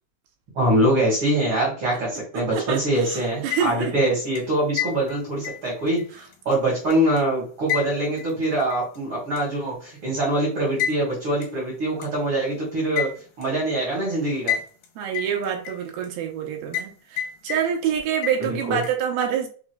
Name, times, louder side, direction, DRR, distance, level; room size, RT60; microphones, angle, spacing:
voice 1, 0.5-6.0 6.4-13.1 13.4-14.5 18.7-18.8, right 1 dB, 55° right, -3 dB, 1.5 m, -23 dB
voice 2, 2.3-3.9 15.0-19.5, right 8 dB, 80° right, 2 dB, 2.6 m, -27 dB
sound 1, 3.3-4.0 4.4-7.2 7.7-9.0 9.4-9.5 10.8-11.0 11.4-11.5 12.0-12.1 13.0-13.5 14.5-14.9 15.1-16.1 16.7-16.9 17.2-17.9 18.2-18.9, left 9 dB, 70° left, 2.3 m, -30 dB
6.0 x 3.6 x 2.2 m, 0.41 s
omnidirectional pair, 4.4 m